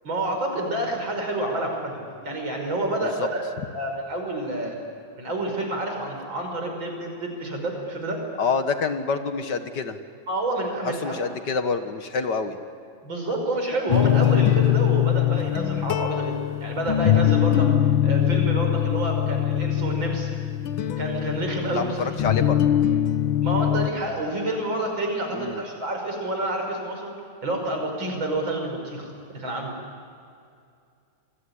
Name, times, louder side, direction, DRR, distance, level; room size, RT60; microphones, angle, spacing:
voice 1, 0.0-3.4 3.7-4.8 5.2-8.2 10.3-11.3 13.0-17.7 18.0-20.3 21.0-22.2 23.4-27.1 27.4-29.7, right 1 dB, 70° right, 2 dB, 6.4 m, -28 dB
voice 2, 8.4-10.0 10.8-12.6 21.7-22.6 25.3-25.6, left 5 dB, 60° left, 9 dB, 2.0 m, -27 dB
sound 1, 13.9-23.9, left 11 dB, 80° left, 1.8 m, -22 dB
28.0 x 21.0 x 9.9 m, 2.4 s
omnidirectional pair, 2.2 m